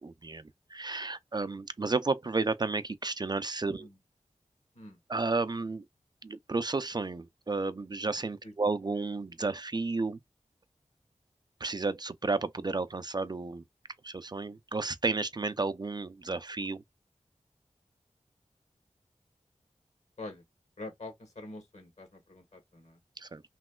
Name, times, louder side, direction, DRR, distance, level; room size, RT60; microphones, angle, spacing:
voice 1, 0.0-3.9 5.1-5.9 6.2-10.2 11.6-13.6 14.0-16.8 23.2-23.4, right 3 dB, 35° right, 0.4 m, -32 dB
voice 2, 20.8-23.0, left 2 dB, 65° left, 1.5 m, -45 dB
3.1 x 2.9 x 2.2 m
cardioid pair, 45°, 12 cm